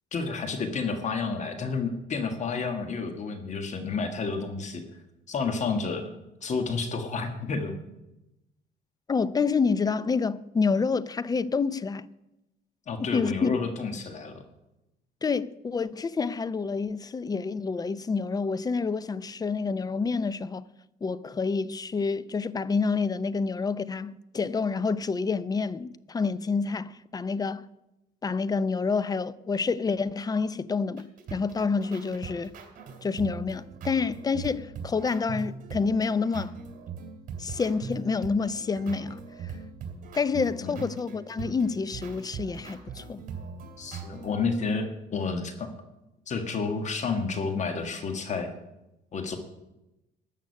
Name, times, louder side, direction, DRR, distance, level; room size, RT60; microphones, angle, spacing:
voice 1, 0.1-4.8 5.3-6.1 6.4-7.8 12.9-14.3 40.6-40.8 43.8-45.7 46.3-48.5 49.1-49.4, left 4 dB, 45° left, 1.7 m, -30 dB
voice 2, 9.1-12.1 13.0-13.6 15.2-20.7 21.0-27.7 28.2-32.5 33.0-36.5 37.4-39.2 40.1-43.2, left 4 dB, 20° left, 0.5 m, -28 dB
sound 1, 31.0-44.5, right 6 dB, 55° right, 2.7 m, -40 dB
13.5 x 6.5 x 9.5 m
cardioid pair, 110°, 17 cm